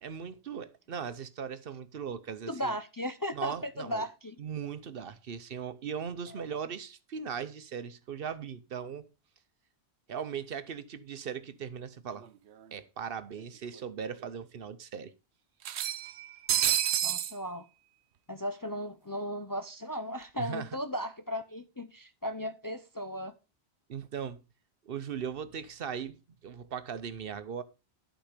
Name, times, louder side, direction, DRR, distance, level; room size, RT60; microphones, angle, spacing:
voice 1, 0.0-2.7 3.3-4.0 4.4-9.1 10.1-12.3 12.7-15.1 20.4-20.7 23.9-24.4 24.8-26.2 26.4-27.6, right 7 dB, 60° right, 0.9 m, -38 dB
voice 2, 2.5-4.4 17.0-17.6 18.3-23.3, equal, 25° left, 0.5 m, -36 dB
sound 1, 12.2-12.3 12.6-12.7 13.8-13.9 14.2-14.3 15.6-17.3, right 11 dB, 90° right, 0.9 m, -29 dB
11.5 x 5.1 x 5.0 m
omnidirectional pair, 1.1 m